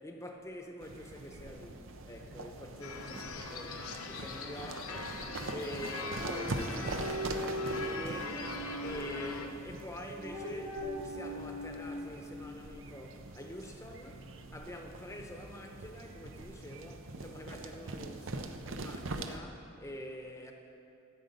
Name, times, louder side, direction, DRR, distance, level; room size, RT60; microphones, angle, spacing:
voice 1, 0.0-20.5, equal, 15° left, 3 dB, 0.9 m, -46 dB
sound 1, 0.8-19.4, right 2 dB, 60° right, 0.7 m, -43 dB
sound 2, 2.8-9.5, left 4 dB, 75° left, 0.9 m, -41 dB
sound 3, 6.2-9.3 10.0-12.3, equal, 30° right, 1.4 m, -40 dB
14.0 x 7.8 x 5.3 m, 2.6 s
head